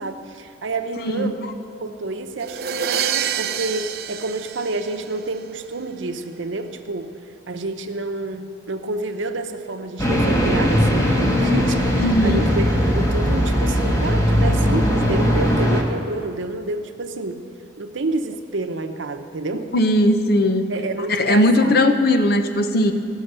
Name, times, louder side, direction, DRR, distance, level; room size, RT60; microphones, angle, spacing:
voice 1, 0.0-1.4 1.8-7.1 7.5-17.4 17.8-19.7 20.7-21.8, right 2 dB, 90° right, 7 dB, 0.8 m, -29 dB
sound 1, 2.4-5.4, right 8 dB, 55° right, 0.4 m, -27 dB
sound 2, 10.0-15.8, equal, 15° left, 1.1 m, -19 dB
voice 2, 12.0-12.5 19.7-20.6 21.1-22.9, left 1 dB, 55° left, 7 dB, 0.7 m, -18 dB
16.5 x 6.4 x 6.6 m, 2.5 s
head